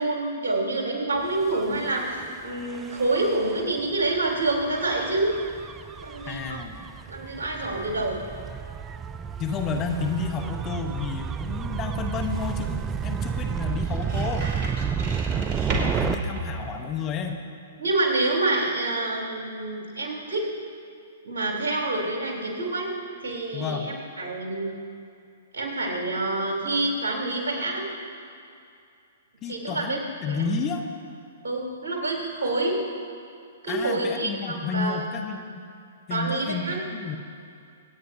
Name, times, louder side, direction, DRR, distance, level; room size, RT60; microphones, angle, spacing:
voice 1, 0.0-5.3 6.0-6.6 7.0-8.2 15.3-15.6 17.8-20.4 21.2-22.9 23.2-24.7 25.5-27.9 29.5-30.0 30.3-30.4 31.4-32.8 33.6-35.0 36.1-36.8, right 2 dB, 65° right, -2 dB, 3.5 m, -27 dB
Gull seagull / Waves surf / Siren, 1.4-16.2, right 7 dB, 20° right, 0.4 m, -32 dB
voice 2, 6.3-6.8 9.4-14.5 15.7-17.4 23.5-23.9 29.4-30.8 33.7-35.4 36.1-36.6 36.9-37.2, left 5 dB, 30° left, 4 dB, 1.0 m, -31 dB
sound 1, 11.1-17.3, right 2 dB, 35° right, 2.7 m, -35 dB
26.0 x 9.3 x 2.8 m, 2.4 s
figure-of-eight pair, 115°, 0 cm